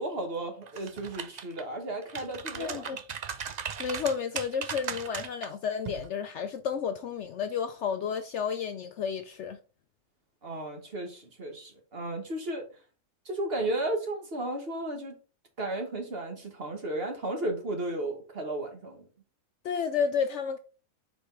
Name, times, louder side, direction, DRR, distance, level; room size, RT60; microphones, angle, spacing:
voice 1, 0.0-3.0 10.4-12.6 13.2-15.1 15.6-19.1, right 1 dB, 45° right, 1.5 m, -34 dB
sound 1, 0.7-1.6 2.0-5.5 5.9-6.1, right 7 dB, 70° right, 0.4 m, -37 dB
voice 2, 2.6-3.0 3.8-9.6 19.6-20.6, left 6 dB, 65° left, 0.7 m, -31 dB
4.9 x 4.2 x 4.6 m
omnidirectional pair, 1.5 m